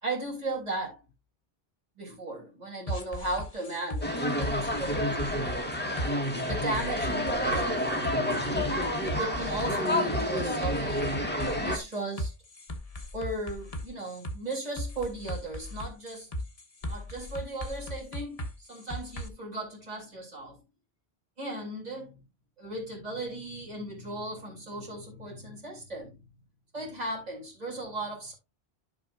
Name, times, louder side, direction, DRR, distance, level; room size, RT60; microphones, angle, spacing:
voice 1, 0.0-1.0 2.0-5.4 6.5-8.0 9.2-11.1 11.6-12.3 13.1-16.3 16.8-20.6 21.4-22.2 22.6-26.2 26.7-28.3, right 2 dB, 40° right, 3.4 m, -36 dB
sound 1, 2.9-19.3, equal, 35° left, 1.3 m, -38 dB
sound 2, 4.0-11.8, equal, 10° left, 1.4 m, -29 dB
11.5 x 6.1 x 2.6 m
omnidirectional pair, 1.0 m